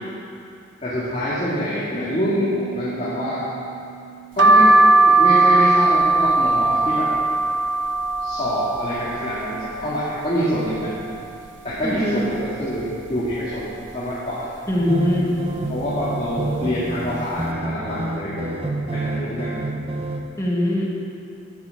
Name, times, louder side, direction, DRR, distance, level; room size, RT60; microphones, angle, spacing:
voice 1, 0.8-3.4 4.4-4.7 5.2-7.1 8.2-10.9 11.6-14.5 15.7-18.5 18.9-19.5, equal, 35° left, -10 dB, 2.3 m, -26 dB
Piano, 1.9-7.5, right 6 dB, 50° left, 1.5 m, -40 dB
sound 1, 4.4-10.1 10.5-11.3 11.7-11.8 11.9-13.1 13.6-13.9 14.7-15.0 15.8-16.0 16.3-16.5, right 2 dB, 70° right, 0.9 m, -18 dB
voice 2, 11.8-12.2 14.7-15.4 20.4-20.9, left 1 dB, 15° left, -4 dB, 1.9 m, -21 dB
sound 2, 14.8-20.2, right 2 dB, 30° right, 0.8 m, -28 dB
13.0 x 6.0 x 7.8 m, 2.5 s
head